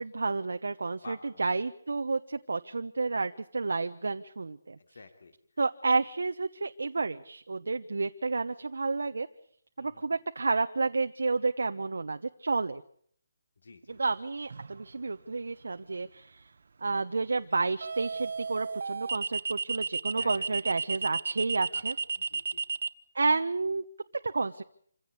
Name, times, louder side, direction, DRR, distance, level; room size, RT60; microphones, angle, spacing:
voice 1, 0.0-4.8 5.6-9.3 9.8-12.8 13.9-16.4 16.8-21.9 23.1-23.8 24.2-24.6, right 3 dB, 85° right, 8 dB, 1.1 m, -30 dB
voice 2, 1.0-1.5 4.8-5.3 9.8-10.1 13.6-14.0 15.9-16.1 20.1-20.5 21.7-21.8 22.2-22.6, left 4 dB, 60° left, 8 dB, 2.9 m, -50 dB
sound 1, 14.5-14.8 17.8-22.9, right 4 dB, 55° right, 1.2 m, -32 dB
27.0 x 16.0 x 8.3 m, 0.62 s
hypercardioid pair, 175°, 0 cm